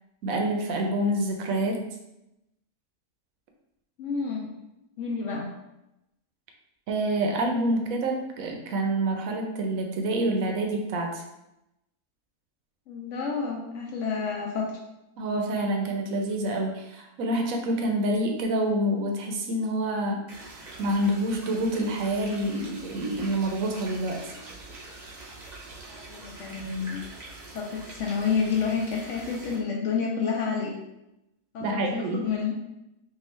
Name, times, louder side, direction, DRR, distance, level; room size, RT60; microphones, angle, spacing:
voice 1, 0.2-1.8 6.9-11.2 15.2-20.2 20.8-24.3 31.6-32.2, right 1 dB, 70° right, 2 dB, 0.9 m, -27 dB
voice 2, 4.0-4.5 5.0-5.5 12.9-14.7 25.9-27.0 27.5-30.7 31.5-32.5, left 5 dB, 65° left, -1 dB, 0.8 m, -29 dB
sound 1, 20.3-29.6, right 2 dB, 40° right, 0.7 m, -44 dB
3.7 x 2.4 x 3.0 m, 0.89 s
omnidirectional pair, 1.6 m